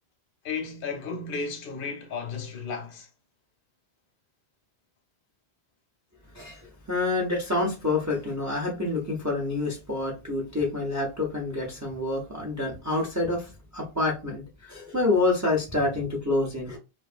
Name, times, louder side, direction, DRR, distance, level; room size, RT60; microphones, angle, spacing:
voice 1, 0.4-3.1, left 5 dB, 60° left, 0.8 m, -34 dB
voice 2, 6.9-16.8, left 2 dB, 25° right, 0.4 m, -27 dB
2.5 x 2.3 x 2.4 m
omnidirectional pair, 1.1 m